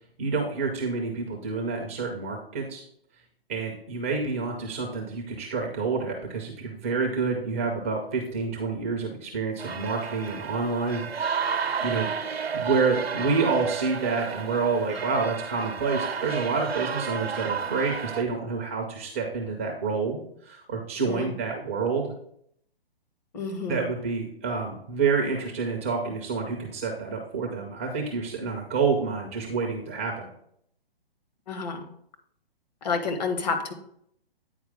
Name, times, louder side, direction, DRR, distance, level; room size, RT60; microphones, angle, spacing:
voice 1, 0.2-2.8 3.5-11.0 11.8-12.1 12.5-22.0 23.7-30.3, right 4 dB, 15° right, 1 dB, 0.4 m, -28 dB
sound 1, 9.6-18.2, right 6 dB, 80° right, 0.7 m, -32 dB
voice 2, 23.3-23.9 31.5-31.8 32.8-33.7, left 4 dB, 45° left, 6 dB, 1.1 m, -29 dB
8.9 x 4.5 x 3.5 m, 0.68 s
figure-of-eight pair, 130°, 30 cm